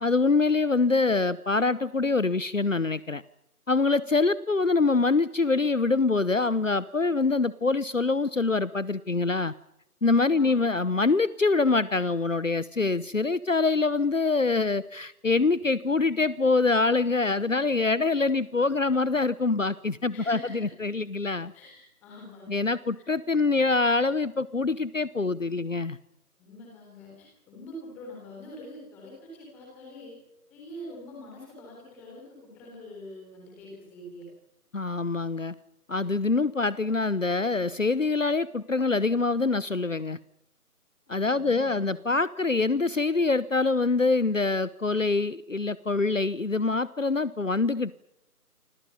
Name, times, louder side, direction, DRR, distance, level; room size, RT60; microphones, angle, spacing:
voice 1, 0.0-3.2 3.7-9.5 10.0-21.5 22.5-26.0 34.7-35.5 35.9-40.2 41.1-47.9, left 3 dB, 55° left, 18 dB, 1.0 m, -25 dB
voice 2, 10.3-10.9 20.1-20.7 21.5-22.6 26.4-30.2 30.5-34.3 41.2-41.9, left 1 dB, 5° left, -2 dB, 3.6 m, -45 dB
28.5 x 25.5 x 5.5 m, 0.80 s
figure-of-eight pair, 165°, 47 cm